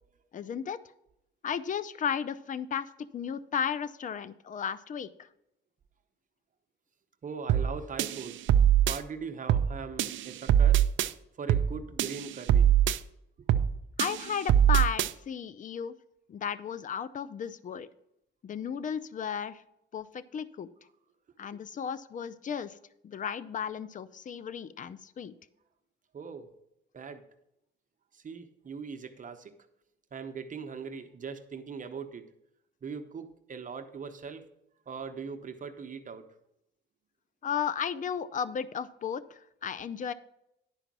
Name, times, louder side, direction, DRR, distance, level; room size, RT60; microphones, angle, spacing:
voice 1, 0.3-0.8 1.4-5.1 14.0-15.9 16.3-17.9 18.4-19.6 19.9-20.7 21.4-22.8 23.0-25.3 37.4-40.1, left 7 dB, 40° left, 16 dB, 0.5 m, -34 dB
voice 2, 7.2-8.4 8.9-10.8 11.4-12.8 13.4-13.5 26.1-26.5 26.9-27.3 28.1-29.5 30.1-32.2 32.8-34.5 34.9-36.3, right 5 dB, 40° right, 7 dB, 0.9 m, -40 dB
sound 1, 7.5-7.7 8.0-9.0 9.5-9.7 10.0-11.1 11.5-11.7 12.0-13.0 13.5-13.7 14.0-15.1, right 10 dB, 75° right, 0.5 m, -23 dB
10.5 x 5.0 x 6.0 m, 0.81 s
cardioid pair, 90°, 20 cm